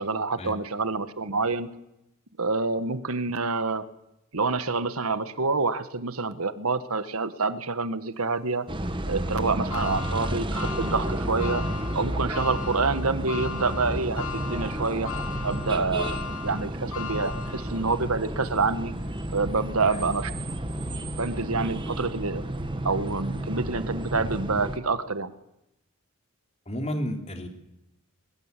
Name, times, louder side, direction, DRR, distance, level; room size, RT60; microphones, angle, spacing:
voice 1, 0.0-1.7 2.4-3.8 4.3-8.6 9.1-11.6 11.9-15.1 15.4-16.2 16.4-18.9 19.3-20.3 21.2-22.4 22.8-25.3, right 4 dB, 80° right, 12 dB, 1.5 m, -27 dB
sound 1, 8.7-24.8, right 1 dB, 20° right, 1.4 m, -32 dB
sound 2, 9.7-18.1 18.6-18.7 19.8-19.9, left 6 dB, 75° left, 1.6 m, -38 dB
voice 2, 26.6-27.5, equal, 30° left, 4 dB, 3.4 m, -32 dB
22.0 x 20.5 x 8.3 m, 0.86 s
head